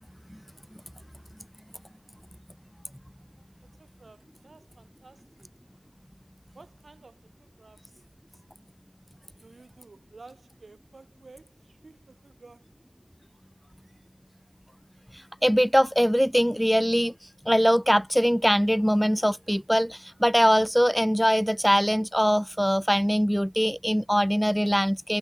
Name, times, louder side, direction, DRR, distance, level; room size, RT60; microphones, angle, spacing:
voice 1, 3.6-5.5 6.5-8.1 9.4-12.9, right 3 dB, 80° right, 6.4 m, -53 dB
voice 2, 15.1-17.1 17.5-25.2, equal, ahead, 0.5 m, -22 dB
wide cardioid pair, 40°, 0 cm